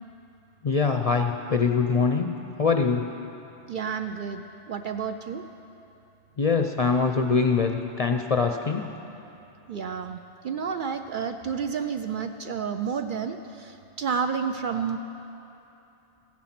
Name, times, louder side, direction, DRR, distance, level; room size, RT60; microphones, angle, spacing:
voice 1, 0.6-2.3 2.6-3.0 6.4-8.9, left 5 dB, 45° left, 5 dB, 0.5 m, -23 dB
voice 2, 3.7-5.4 9.7-15.0, right 6 dB, 60° right, 7 dB, 0.6 m, -30 dB
15.0 x 10.5 x 5.9 m, 2.9 s
omnidirectional pair, 1.2 m